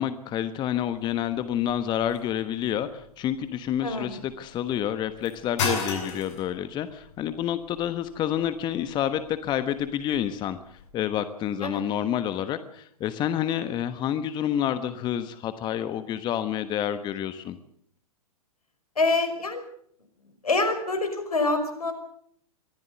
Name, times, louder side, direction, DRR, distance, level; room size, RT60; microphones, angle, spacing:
voice 1, 0.0-17.6, left 10 dB, 25° left, 11 dB, 1.2 m, -29 dB
sound 1, 0.8-10.9, left 4 dB, 50° left, 7.3 m, -37 dB
voice 2, 3.8-4.2 11.6-11.8 19.0-19.6 20.4-21.9, left 3 dB, 80° left, 9 dB, 5.4 m, -26 dB
23.5 x 15.0 x 8.1 m, 0.66 s
figure-of-eight pair, 110°, 19 cm